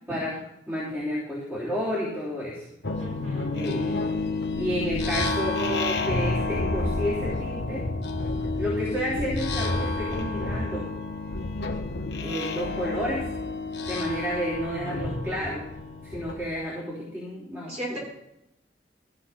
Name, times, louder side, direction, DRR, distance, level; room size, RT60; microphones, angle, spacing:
voice 1, 0.7-2.7 3.5-3.9 4.6-7.9 8.6-10.9 12.2-13.2 13.8-15.6 16.0-18.0, equal, 15° right, -9 dB, 3.4 m, -31 dB
sound 1, 2.8-16.5, left 2 dB, 75° left, 1.1 m, -29 dB
voice 2, 3.0-4.1 17.7-18.0, right 1 dB, 40° right, -3 dB, 5.8 m, -38 dB
14.5 x 6.9 x 5.8 m, 0.82 s
head